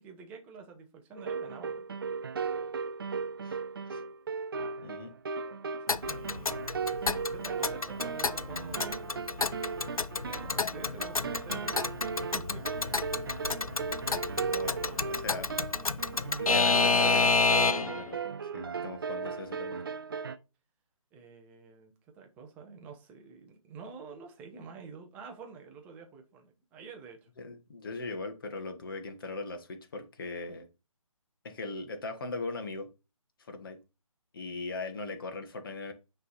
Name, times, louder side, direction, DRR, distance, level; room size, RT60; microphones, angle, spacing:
voice 1, 0.0-1.9 5.9-6.9 7.3-9.0 10.0-11.7 12.2-12.6 14.1-15.5 21.1-27.3, right 5 dB, 10° right, 0.7 m, -48 dB
sound 1, 1.1-20.4, right 5 dB, 40° right, 0.5 m, -37 dB
Alarm / Clock, 5.9-18.0, left 4 dB, 85° left, 0.5 m, -29 dB
voice 2, 14.5-14.8 15.1-15.5 16.4-19.8 27.4-30.7 31.4-32.9 33.4-33.8 34.3-35.9, left 3 dB, 40° left, 1.3 m, -39 dB
9.0 x 3.4 x 4.1 m
figure-of-eight pair, 145°, 18 cm